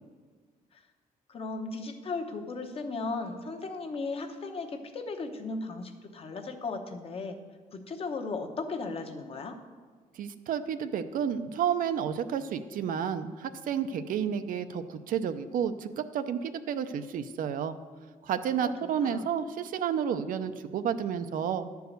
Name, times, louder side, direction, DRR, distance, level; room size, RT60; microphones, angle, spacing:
voice 1, 1.3-7.4 7.7-9.6 18.6-18.7 19.0-19.3, left 3 dB, 40° left, 4 dB, 1.0 m, -36 dB
voice 2, 10.2-17.8 18.2-21.7, right 8 dB, 70° right, 9 dB, 0.6 m, -31 dB
11.0 x 4.7 x 7.9 m, 1.6 s
cardioid pair, 135°, 14 cm